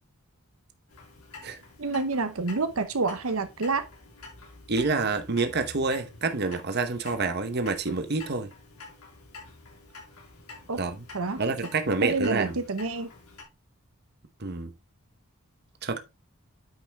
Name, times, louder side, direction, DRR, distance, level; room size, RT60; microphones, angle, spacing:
Clock, 0.9-13.4, left 3 dB, 85° left, 3.6 m, -48 dB
voice 1, 1.8-3.9 10.7-10.8 11.1-11.7 12.0-13.1, right 3 dB, 75° right, 0.9 m, -28 dB
voice 2, 4.7-8.5 10.8-10.9 11.4-12.6 14.4-14.7 15.8-16.0, right 3 dB, 50° right, 1.0 m, -27 dB
9.2 x 5.5 x 3.4 m
head